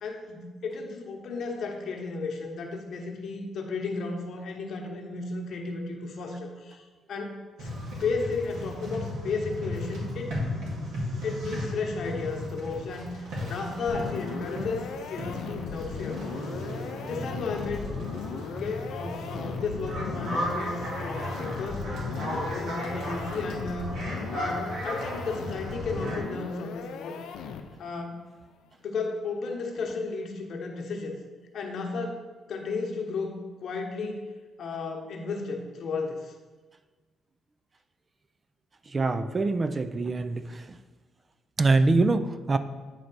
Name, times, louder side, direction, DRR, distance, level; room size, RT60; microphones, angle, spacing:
voice 1, 0.0-6.8 7.1-7.7 8.0-10.3 11.2-16.2 17.0-17.9 18.4-21.9 22.1-24.0 24.3-27.2 27.8-28.3 28.8-31.1 31.5-34.2 34.6-36.3, left 4 dB, 65° left, 2 dB, 1.0 m, -34 dB
sound 1, 7.6-26.2, left 1 dB, 80° right, 1.9 m, -35 dB
sound 2, 13.9-27.9, left 6 dB, 85° left, 0.5 m, -38 dB
voice 2, 38.9-40.8 41.6-42.6, right 3 dB, 30° right, 11 dB, 0.3 m, -24 dB
8.9 x 3.3 x 4.1 m, 1.3 s
cardioid pair, 90°, 0 cm